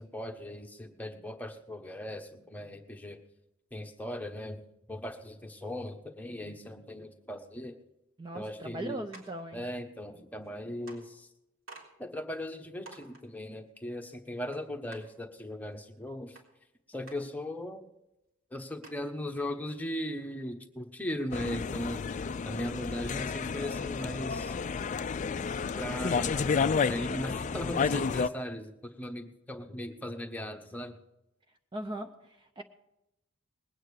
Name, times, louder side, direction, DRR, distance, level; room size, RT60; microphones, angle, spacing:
voice 1, 0.0-3.2 3.7-7.8 8.3-9.0 9.5-11.3 12.0-16.4 16.9-17.8 18.5-22.0 22.4-24.5 25.8-31.0, left 1 dB, 10° left, 4 dB, 1.1 m, -38 dB
voice 2, 8.2-9.6 31.7-32.6, right 1 dB, 25° right, 6 dB, 0.6 m, -39 dB
sound 1, 9.1-9.4 10.4-10.5 10.9-11.0 11.7-11.9 12.3-12.4 12.9-13.2 14.5-14.6 14.9-15.0 16.4-16.5 17.1-17.2 17.8-17.9 18.1-18.2 18.8-19.1, right 2 dB, 75° right, 3.6 m, -49 dB
sound 2, 21.3-28.3, left 5 dB, 35° left, 0.4 m, -31 dB
20.5 x 9.0 x 4.9 m, 0.90 s
head